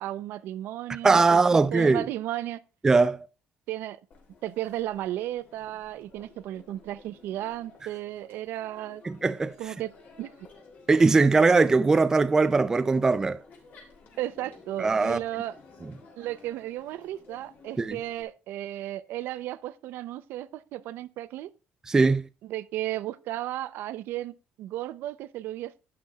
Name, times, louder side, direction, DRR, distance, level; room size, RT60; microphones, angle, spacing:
voice 1, 0.0-1.4 1.7-2.6 3.7-4.0 4.4-9.0 9.6-9.9 10.2-10.3 14.2-15.6 16.2-21.5 22.4-25.8, right 14 dB, 70° right, 0.6 m, -34 dB
voice 2, 1.0-2.0 2.8-3.3 9.0-9.5 10.9-13.4 14.8-15.2 17.8-18.0 21.9-22.3, right 3 dB, 15° right, 0.3 m, -20 dB
Crowd, 4.1-18.2, left 4 dB, 55° left, 3.0 m, -53 dB
11.5 x 9.5 x 2.3 m
cardioid pair, 145°, 4 cm